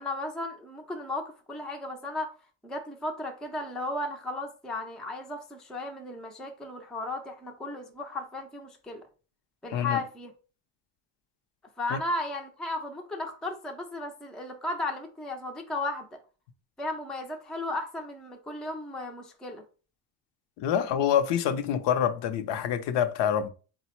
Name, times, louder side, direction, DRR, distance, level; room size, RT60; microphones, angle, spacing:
voice 1, 0.0-2.3 2.6-9.1 9.6-10.3 11.8-16.2 16.8-19.6, left 2 dB, ahead, 0.3 m, -35 dB
voice 2, 9.7-10.0 11.9-12.0 20.6-23.5, left 9 dB, 70° left, 0.6 m, -26 dB
3.9 x 2.0 x 4.3 m
cardioid pair, 130°, 46 cm